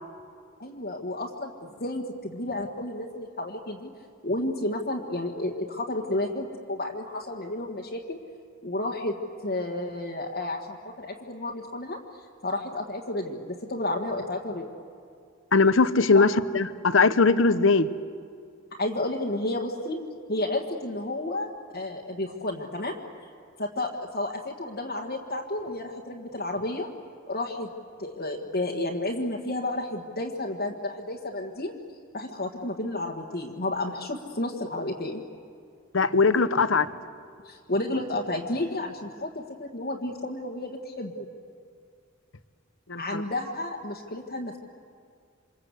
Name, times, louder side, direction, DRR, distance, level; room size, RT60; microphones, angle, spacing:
voice 1, 0.6-3.9 4.2-8.2 8.6-9.2 9.4-12.0 12.4-14.8 16.1-16.2 18.8-20.0 20.3-23.0 23.6-26.9 27.3-27.7 28.0-31.7 32.1-35.2 37.4-41.2 43.0-44.6, left 1 dB, 50° left, -1 dB, 1.7 m, -31 dB
voice 2, 15.5-17.9 35.9-36.9 42.9-43.2, left 4 dB, 65° left, 13 dB, 0.9 m, -20 dB
28.0 x 25.5 x 8.3 m, 2.3 s
head